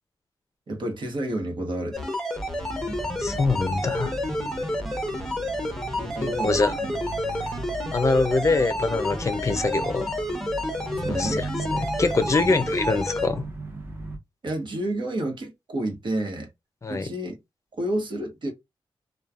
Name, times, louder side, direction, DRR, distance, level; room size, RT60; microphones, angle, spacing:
voice 1, 0.7-2.0 6.0-6.9 11.0-11.4 12.4-12.5 14.4-16.5 16.9-17.4 17.8-18.5, right 1 dB, 55° right, 1.1 m, -30 dB
sound 1, 1.9-13.3, left 1 dB, 5° left, 0.8 m, -29 dB
sound 2, 2.6-14.2, right 2 dB, 25° right, 0.8 m, -37 dB
voice 2, 3.2-4.1 6.2-6.8 7.9-10.1 11.0-11.4 11.7-13.5 16.8-17.1, left 3 dB, 35° left, 0.5 m, -24 dB
3.1 x 2.2 x 2.4 m
wide cardioid pair, 105°, 9 cm